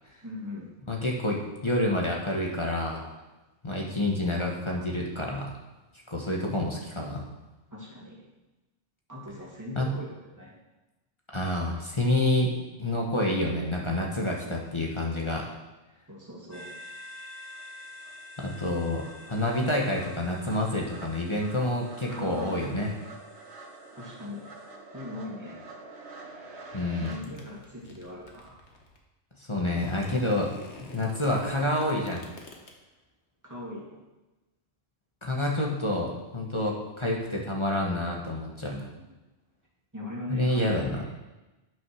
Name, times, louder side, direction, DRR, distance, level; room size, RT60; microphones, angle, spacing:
voice 1, 0.2-0.7 7.7-8.2 9.1-10.5 16.1-16.7 22.1-22.6 23.9-24.5 24.9-25.6 27.0-28.6 33.4-34.1 38.7-39.2 39.9-41.1, left 2 dB, 15° right, -5 dB, 2.8 m, -40 dB
voice 2, 0.9-3.1 3.6-5.5 6.1-7.2 9.7-9.9 11.3-12.5 12.8-15.5 18.4-22.9 26.7-27.2 29.5-30.5 30.8-32.2 35.2-38.8 40.3-41.0, left 1 dB, 25° left, -2 dB, 1.3 m, -28 dB
sound 1, 16.5-24.7, left 2 dB, 50° left, 3.1 m, -49 dB
sound 2, 17.1-17.2 17.5-27.2, right 3 dB, 75° right, 1.5 m, -47 dB
sound 3, 26.9-29.0 29.6-32.7, left 2 dB, 80° left, 1.7 m, -47 dB
9.1 x 6.2 x 6.3 m, 1.1 s
omnidirectional pair, 1.1 m